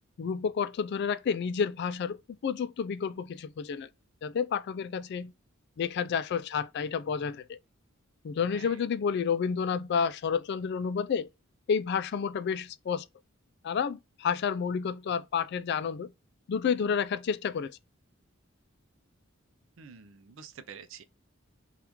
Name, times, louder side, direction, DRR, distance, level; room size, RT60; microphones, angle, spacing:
voice 1, 0.2-3.9 4.2-5.3 5.8-7.6 8.2-11.3 11.7-13.0 13.6-16.1 16.5-17.8, left 6 dB, 55° left, 0.3 m, -30 dB
voice 2, 8.4-8.8 19.8-21.0, right 6 dB, 65° right, 0.5 m, -48 dB
2.9 x 2.4 x 3.4 m
head